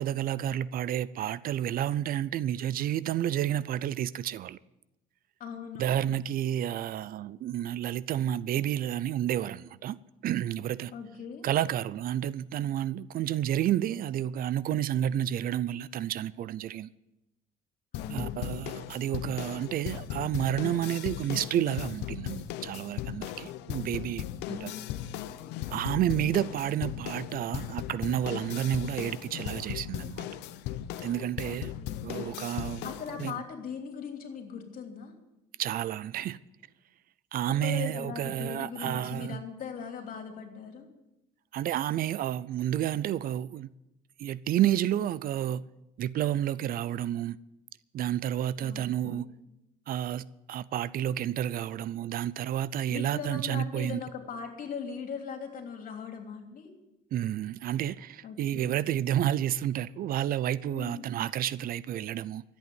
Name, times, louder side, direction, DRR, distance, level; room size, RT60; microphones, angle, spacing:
voice 1, 0.0-4.6 5.8-10.0 10.2-10.9 11.4-16.9 18.1-24.7 25.7-30.3 31.0-31.7 32.0-32.9 33.2-33.4 35.6-36.4 37.3-39.4 41.5-43.7 44.2-45.6 46.0-47.4 47.9-49.3 49.9-54.0 57.1-62.4, right 11 dB, 60° right, 0.5 m, -30 dB
voice 2, 5.4-5.9 10.9-11.4 17.9-18.4 24.5-25.2 26.2-26.3 31.4-32.1 32.8-35.1 37.6-40.9 48.6-49.3 52.9-56.7 58.2-58.7 60.7-61.1, left 6 dB, 55° left, 3.2 m, -40 dB
sound 1, 17.9-33.3, left 12 dB, 90° left, 0.8 m, -37 dB
13.5 x 8.6 x 9.3 m
cardioid pair, 110°, 17 cm